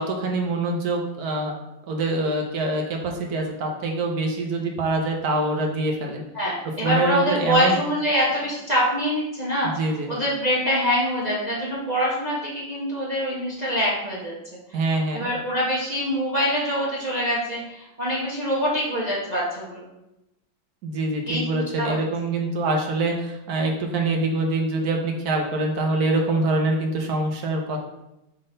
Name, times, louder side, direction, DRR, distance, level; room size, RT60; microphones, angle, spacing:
voice 1, 0.0-1.5 1.9-6.2 6.8-7.8 9.6-10.1 14.7-15.3 20.8-27.8, right 2 dB, 60° right, 2 dB, 1.3 m, -25 dB
voice 2, 6.3-14.3 14.7-14.8 15.1-19.9 21.3-22.0, equal, 25° right, -6 dB, 1.1 m, -24 dB
6.4 x 3.9 x 3.9 m, 0.90 s
omnidirectional pair, 2.1 m